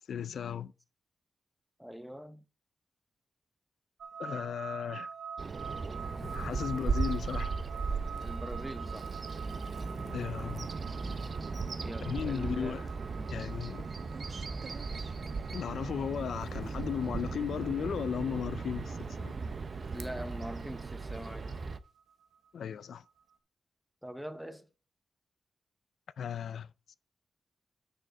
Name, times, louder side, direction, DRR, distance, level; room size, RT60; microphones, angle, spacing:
voice 1, 0.1-0.7 4.2-5.1 6.2-7.5 10.0-10.7 12.1-12.8 13.3-13.9 15.5-19.3 22.5-23.0 26.2-26.7, left 8 dB, 90° left, 0.4 m, -36 dB
voice 2, 1.8-2.4 8.2-9.1 11.8-12.8 13.8-13.9 19.9-21.5 24.0-24.7, equal, 5° right, 0.8 m, -43 dB
sound 1, 4.0-23.1, right 6 dB, 70° right, 0.9 m, -47 dB
Bird vocalization bird call bird song, 5.4-21.8, right 4 dB, 45° right, 0.5 m, -37 dB
9.2 x 6.4 x 3.3 m
wide cardioid pair, 125°, 0 cm